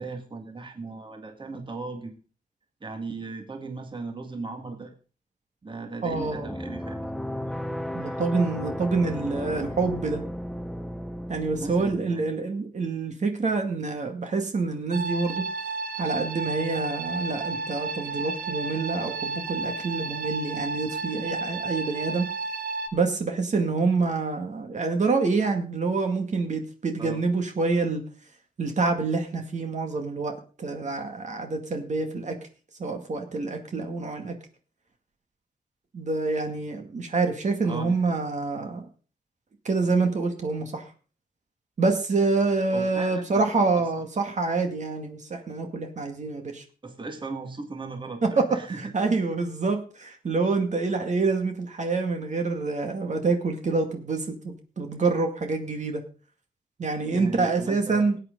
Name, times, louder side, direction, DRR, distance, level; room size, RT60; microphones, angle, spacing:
voice 1, 0.0-2.1 2.8-4.9 5.6-7.1 8.0-8.2 11.5-12.2 27.0-27.2 34.2-34.3 37.6-38.2 42.7-43.9 46.8-48.9 57.1-58.1, right 3 dB, 35° right, 4 dB, 2.1 m, -37 dB
voice 2, 6.0-6.5 7.9-10.2 11.3-15.5 16.0-22.3 22.9-28.0 28.6-32.3 32.8-34.3 35.9-38.9 39.6-40.8 41.8-46.6 48.4-48.5 48.9-56.0 56.8-58.2, right 3 dB, 55° right, 4 dB, 2.1 m, -27 dB
sound 1, 6.1-12.0, equal, ahead, 0.9 m, -34 dB
sound 2, 14.9-22.9, right 3 dB, 80° right, 1.3 m, -32 dB
19.0 x 9.0 x 3.9 m, 0.37 s
wide cardioid pair, 120°, 15 cm